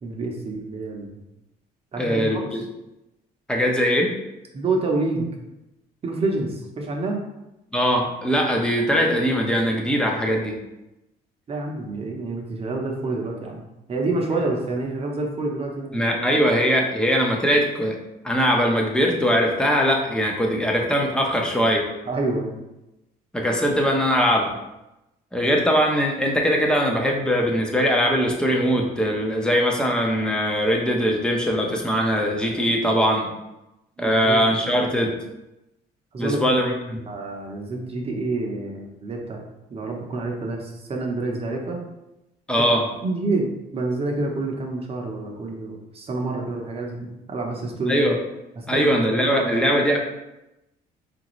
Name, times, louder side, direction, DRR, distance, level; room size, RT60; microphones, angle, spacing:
voice 1, 0.0-1.2 1.9-2.5 4.5-5.3 6.0-7.2 11.5-13.6 13.9-16.4 22.1-22.5 34.0-34.4 36.1-36.6 36.9-39.4 39.7-41.8 43.0-48.0 48.6-49.5, right 2 dB, 35° right, 1 dB, 0.8 m, -28 dB
voice 2, 2.0-2.5 3.5-4.1 7.7-10.6 15.9-18.0 18.2-21.9 23.3-24.6 25.3-33.3 34.0-35.1 36.2-37.0 42.5-42.9 47.9-48.2 48.7-50.0, equal, 5° left, 0 dB, 0.7 m, -21 dB
4.6 x 2.6 x 3.0 m, 0.94 s
cardioid pair, 110°, 17 cm